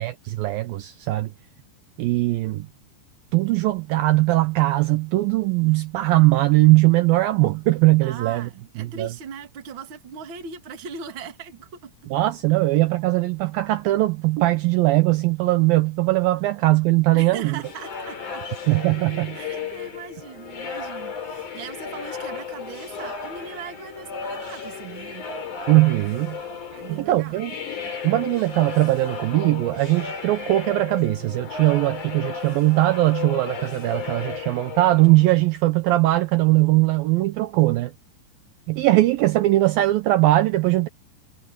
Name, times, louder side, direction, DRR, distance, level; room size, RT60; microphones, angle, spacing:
voice 1, 0.0-1.3 2.0-2.7 3.3-8.5 8.8-9.1 12.1-17.6 18.7-19.4 25.7-26.4 26.9-27.5 28.0-37.9 38.7-40.9, right 18 dB, 85° right, 2.0 m, -20 dB
voice 2, 8.0-11.9 17.1-18.4 19.3-25.3 26.8-27.5, right 6 dB, 45° right, 1.8 m, -39 dB
sound 1, 17.6-35.5, left 5 dB, 45° left, 5.3 m, -34 dB
omnidirectional pair, 5.2 m